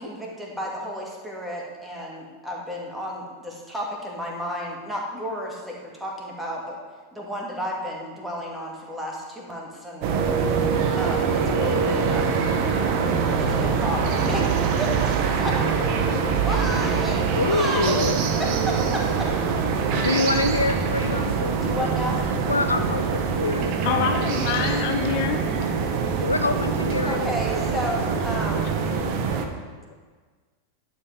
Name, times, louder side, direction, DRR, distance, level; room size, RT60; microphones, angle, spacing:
voice 1, 0.0-6.8 7.1-10.1 10.9-12.4 13.4-18.0 18.4-19.3 21.6-22.2 27.1-28.7, equal, 5° right, -2 dB, 2.1 m, -32 dB
sound 1, 10.0-29.5, right 5 dB, 45° right, 1.0 m, -24 dB
voice 2, 17.3-18.2 19.9-21.6 21.9-22.0 22.5-23.7 26.2-27.3, left 3 dB, 80° left, 9 dB, 0.4 m, -25 dB
voice 3, 23.8-25.5 28.9-29.6 29.9-30.0, left 7 dB, 50° left, 5 dB, 0.9 m, -27 dB
11.0 x 5.3 x 5.9 m, 1.5 s
figure-of-eight pair, 90°, 0 cm